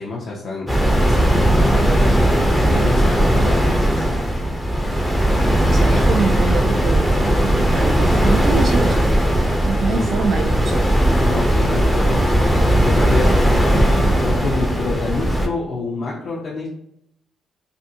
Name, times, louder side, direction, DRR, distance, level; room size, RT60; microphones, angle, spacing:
voice 1, 0.0-4.1 9.8-10.3 11.2-16.7, left 3 dB, 65° left, -3 dB, 0.6 m, -27 dB
sound 1, 0.7-15.5, right 1 dB, ahead, 0.5 m, -17 dB
voice 2, 5.7-9.0 9.7-10.9, right 4 dB, 55° right, 1 dB, 0.3 m, -24 dB
2.6 x 2.5 x 2.6 m, 0.77 s
cardioid pair, 90°, 0 cm